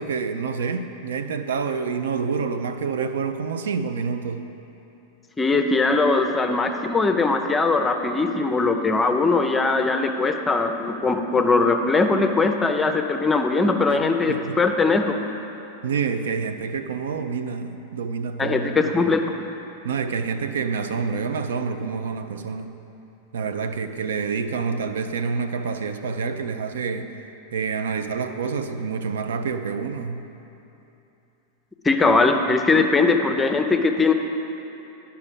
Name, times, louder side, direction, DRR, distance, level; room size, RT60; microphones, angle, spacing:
voice 1, 0.0-4.4 13.9-14.0 14.3-14.6 15.8-19.1 19.8-22.7 23.3-27.1 27.5-30.2, right 5 dB, 65° right, 8 dB, 0.4 m, -27 dB
voice 2, 5.4-15.2 18.4-19.3 31.8-34.1, left 3 dB, 15° left, 6 dB, 0.6 m, -20 dB
10.5 x 5.7 x 5.2 m, 3.0 s
figure-of-eight pair, 90°, 0 cm